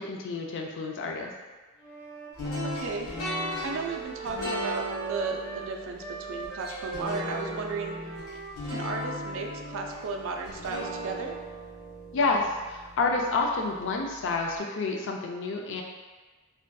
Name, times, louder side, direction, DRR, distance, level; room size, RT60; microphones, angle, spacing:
voice 1, 0.0-1.3 12.1-15.8, left 3 dB, 60° left, 1 dB, 0.4 m, -29 dB
Wind instrument woodwind instrument, 1.7-10.1, right 3 dB, 10° right, 0.7 m, -41 dB
sound 1, 2.4-13.4, equal, 85° left, 1.4 m, -37 dB
voice 2, 2.6-3.3 3.6-8.0 8.7-11.4, right 4 dB, 65° right, 3 dB, 0.3 m, -35 dB
3.3 x 2.6 x 2.2 m, 1.3 s
head